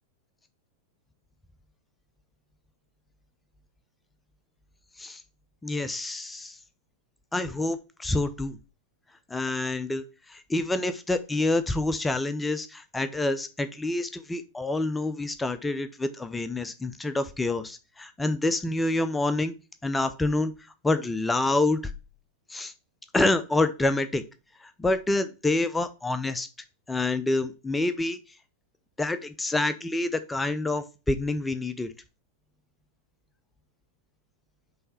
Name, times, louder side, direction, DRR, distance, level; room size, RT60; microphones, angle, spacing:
voice 1, 5.6-6.6 7.3-8.6 9.3-19.5 19.8-20.5 20.8-21.9 22.5-22.7 23.1-24.2 24.6-26.5 26.9-28.2 29.0-31.9, left 2 dB, 10° left, 11 dB, 0.5 m, -27 dB
5.5 x 3.2 x 5.6 m, 0.31 s
figure-of-eight pair, 90°, 0 cm